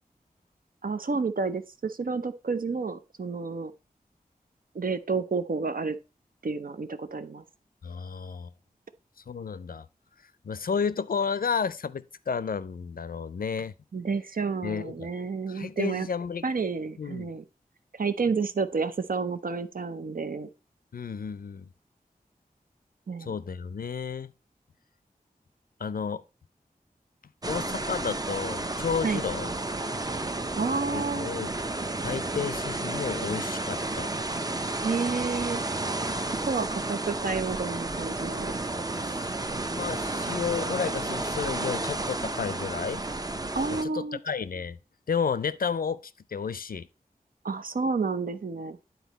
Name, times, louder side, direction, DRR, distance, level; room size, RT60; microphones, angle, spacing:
voice 1, 0.8-3.7 4.7-6.0 6.4-7.4 13.9-16.1 16.4-17.4 17.9-20.5 23.1-23.3 29.0-29.2 30.6-31.3 34.8-35.6 36.4-38.6 43.5-44.2 47.4-48.8, right 4 dB, 65° right, 0.6 m, -30 dB
voice 2, 7.8-8.5 9.3-9.9 10.4-13.7 14.6-15.1 15.5-16.4 17.0-17.3 20.9-21.7 23.2-24.3 25.8-26.2 27.5-29.5 30.9-31.5 32.0-34.1 39.0-39.3 39.7-43.0 43.7-44.8 45.1-46.9, left 6 dB, 70° left, 0.4 m, -32 dB
sound 1, 27.4-43.8, right 2 dB, 25° right, 0.6 m, -32 dB
9.3 x 4.1 x 4.0 m
wide cardioid pair, 55°, 16 cm